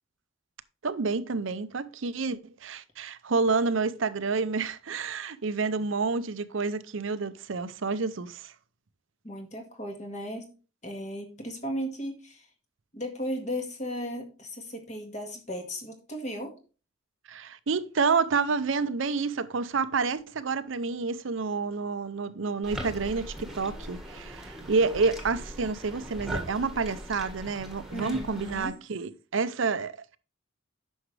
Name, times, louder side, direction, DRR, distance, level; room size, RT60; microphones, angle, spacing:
voice 1, 0.8-8.5 17.3-30.2, right 4 dB, 75° right, 0.6 m, -29 dB
voice 2, 9.2-10.5 10.8-12.5 12.9-16.6 27.9-28.7, equal, 35° left, 1.8 m, -36 dB
sound 1, 22.6-28.7, right 1 dB, ahead, 1.6 m, -40 dB
9.6 x 6.2 x 3.3 m
head